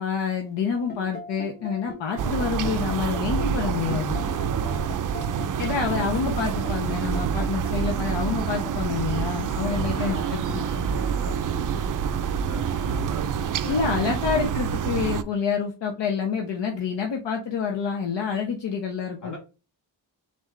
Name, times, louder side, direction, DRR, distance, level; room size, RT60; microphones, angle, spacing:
voice 1, 0.0-4.2 5.6-10.6 13.6-19.4, left 6 dB, 70° left, 2 dB, 0.9 m, -28 dB
sound 1, 0.8-14.7, equal, 20° left, 1.0 m, -41 dB
sound 2, 2.2-15.2, right 7 dB, 45° right, 0.4 m, -27 dB
voice 2, 4.5-5.0 9.5-13.9 19.2-19.4, left 1 dB, 40° left, -1 dB, 2.5 m, -41 dB
4.0 x 3.6 x 3.1 m, 0.30 s
cardioid pair, 95°, 45 cm